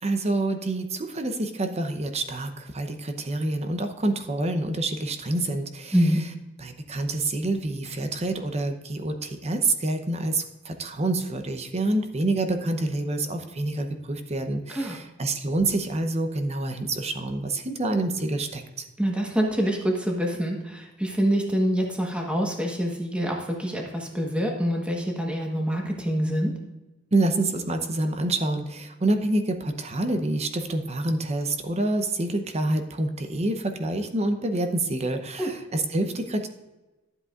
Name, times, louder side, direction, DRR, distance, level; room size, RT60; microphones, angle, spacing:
voice 1, 0.0-5.9 6.6-18.8 27.1-36.5, right 2 dB, 35° right, 6 dB, 0.8 m, -27 dB
voice 2, 19.0-26.5 35.4-35.5, equal, 5° right, 0 dB, 1.3 m, -26 dB
12.0 x 8.0 x 2.5 m, 1.1 s
head